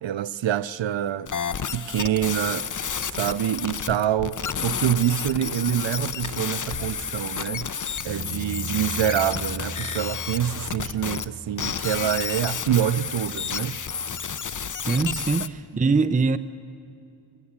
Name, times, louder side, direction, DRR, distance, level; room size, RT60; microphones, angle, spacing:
voice 1, 0.0-1.3 1.7-2.7 3.2-7.7 8.0-13.8 15.7-15.9, right 11 dB, 85° right, 0.6 m, -26 dB
sound 1, 1.3-11.3 11.6-15.5, left 7 dB, 45° left, 0.7 m, -31 dB
sound 2, 2.9-3.9 6.2-8.6 9.3-9.4, left 3 dB, 85° left, 2.0 m, -44 dB
Bass guitar, 8.1-14.3, equal, 40° right, 3.4 m, -40 dB
voice 2, 14.9-16.4, right 4 dB, 20° right, 0.5 m, -22 dB
21.5 x 19.5 x 8.7 m
wide cardioid pair, 100°, 44 cm